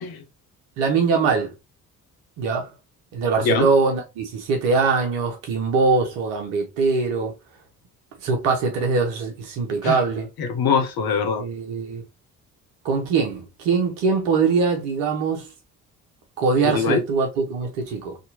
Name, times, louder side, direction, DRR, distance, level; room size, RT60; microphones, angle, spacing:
voice 1, 0.8-1.5 2.4-2.7 3.1-7.3 8.2-10.3 11.4-12.0 12.8-15.5 16.4-18.2, right 4 dB, 75° right, 1.1 m, -22 dB
voice 2, 10.4-11.5 16.6-17.0, left 5 dB, 55° left, 0.9 m, -23 dB
2.9 x 2.8 x 2.8 m
hypercardioid pair, 45°, 43 cm